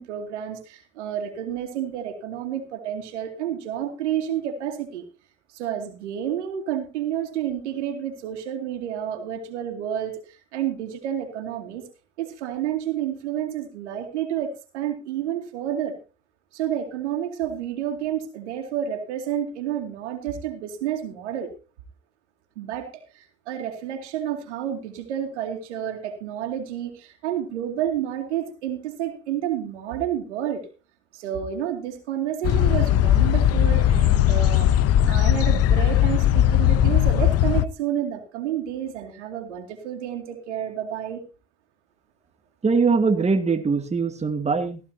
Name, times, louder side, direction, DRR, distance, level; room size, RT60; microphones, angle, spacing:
voice 1, 0.0-5.0 5.5-11.8 12.2-16.0 16.5-21.5 22.6-30.6 31.1-41.2, right 10 dB, 85° right, 4 dB, 2.5 m, -30 dB
sound 1, 32.4-37.6, left 11 dB, 45° left, 0.7 m, -18 dB
voice 2, 42.6-44.8, right 4 dB, 20° right, 7 dB, 1.9 m, -22 dB
16.0 x 14.5 x 2.8 m, 0.31 s
hypercardioid pair, 85°, 34 cm